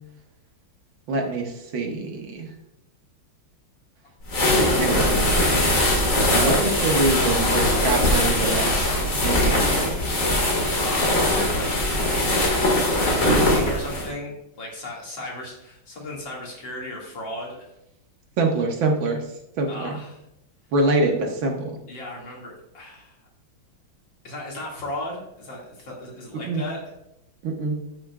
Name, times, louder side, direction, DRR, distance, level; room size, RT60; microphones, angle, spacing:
voice 1, 1.1-2.5 4.7-5.1 6.4-8.9 9.2-9.9 18.4-19.2 19.6-20.0 20.7-21.8 26.5-26.6 27.4-27.8, right 2 dB, 75° right, 2 dB, 2.1 m, -25 dB
sound 1, 4.3-14.1, left 1 dB, 40° left, 2.2 m, -21 dB
voice 2, 10.8-12.0 12.5-17.6 19.6-20.2 21.9-23.1 24.2-26.8, left 1 dB, 65° left, -2 dB, 2.8 m, -35 dB
13.0 x 6.2 x 2.4 m, 0.85 s
omnidirectional pair, 2.2 m